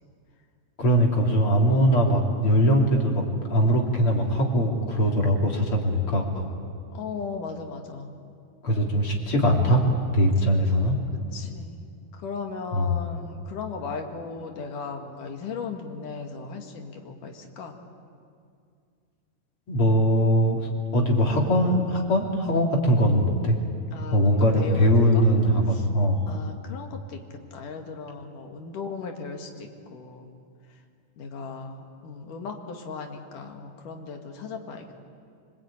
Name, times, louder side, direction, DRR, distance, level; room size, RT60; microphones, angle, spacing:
voice 1, 0.8-6.5 8.6-9.8 10.1-11.0 12.7-12.9 19.7-23.6 24.1-26.2, equal, 40° left, 0 dB, 3.8 m, -21 dB
voice 2, 6.9-8.1 11.1-11.9 12.1-17.8 23.9-25.3 25.7-25.9 26.3-30.3 31.2-35.0, left 4 dB, 75° left, 3 dB, 3.5 m, -37 dB
25.5 x 25.0 x 8.9 m, 2.3 s
omnidirectional pair, 3.7 m